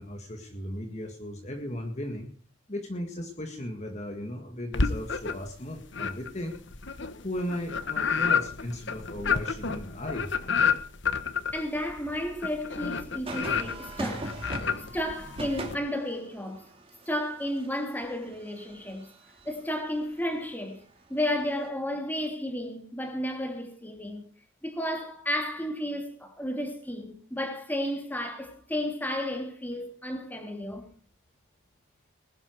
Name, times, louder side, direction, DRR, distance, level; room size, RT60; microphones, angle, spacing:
voice 1, 0.0-2.3 2.7-6.6 7.2-10.3, left 1 dB, 35° left, 1.9 m, -36 dB
sound 1, 4.7-5.5 5.9-15.7, left 6 dB, 60° left, 1.3 m, -30 dB
voice 2, 11.5-14.4 14.7-16.7 17.1-19.1 19.4-20.8 21.1-24.2 24.6-30.9, left 1 dB, 10° left, 3.0 m, -32 dB
sound 2, 13.3-19.6 21.4-21.7, right 1 dB, 25° right, 2.8 m, -40 dB
20.5 x 11.5 x 4.7 m
head